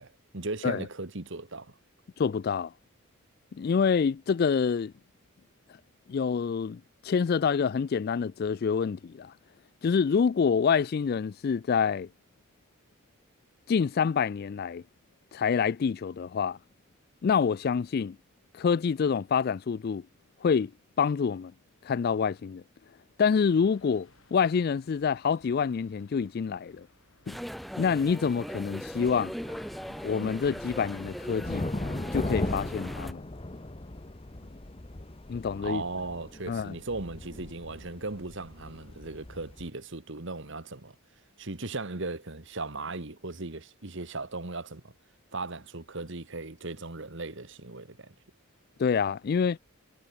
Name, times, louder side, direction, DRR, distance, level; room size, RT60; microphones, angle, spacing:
voice 1, 0.0-1.7 35.6-41.0 41.4-44.9 45.3-48.1, right 3 dB, 55° right, 1.7 m, -37 dB
voice 2, 2.2-2.7 3.5-4.9 6.1-9.3 9.8-12.1 13.7-14.8 15.3-16.6 17.2-18.2 18.5-20.1 20.4-20.7 21.0-21.5 21.8-22.6 23.2-26.9 27.3-27.4 27.8-29.3 30.0-31.7 32.1-33.2 35.3-35.8 36.5-36.7 48.8-49.6, left 6 dB, 45° left, 0.3 m, -27 dB
sound 1, 23.5-34.1, left 2 dB, 70° left, 5.7 m, -64 dB
sound 2, 27.3-33.1, equal, ahead, 0.7 m, -39 dB
sound 3, 28.9-39.7, left 1 dB, 25° left, 1.0 m, -38 dB
head